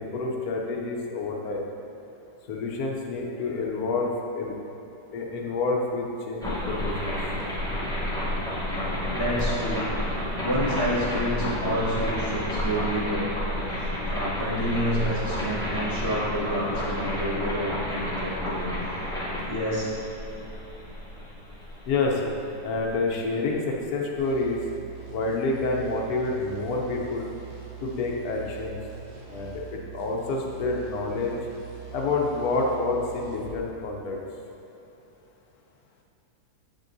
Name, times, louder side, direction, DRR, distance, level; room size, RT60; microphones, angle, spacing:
voice 1, 0.0-1.6 2.5-4.5 5.1-7.2 21.9-22.3 22.6-24.6 25.1-27.3 27.8-28.8 29.3-31.3 31.9-34.2, left 3 dB, 65° left, 0 dB, 1.2 m, -28 dB
sound 1, 6.4-23.3, left 1 dB, 5° left, 0.6 m, -30 dB
voice 2, 9.1-9.9 10.4-13.3 13.8-18.6 18.9-19.0 19.4-19.9, equal, 45° right, -8 dB, 1.7 m, -29 dB
sound 2, 24.2-33.6, right 9 dB, 90° right, 1.8 m, -43 dB
7.4 x 6.4 x 2.6 m, 3.0 s
omnidirectional pair, 1.8 m